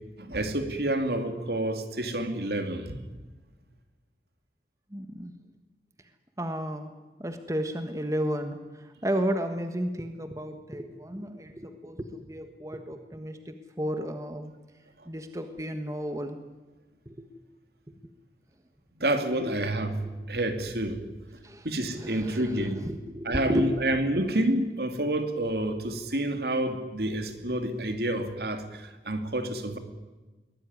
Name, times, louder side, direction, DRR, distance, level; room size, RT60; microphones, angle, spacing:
voice 1, 0.2-3.0 19.0-21.0 21.6-22.9 23.2-29.8, right 1 dB, 60° right, 2.7 m, -29 dB
voice 2, 4.9-5.3 6.4-6.9 7.2-14.5 15.1-16.4 17.1-17.3 19.4-19.5 21.4-21.7 22.0-23.7, equal, 20° right, 1.5 m, -33 dB
23.0 x 20.0 x 9.7 m
head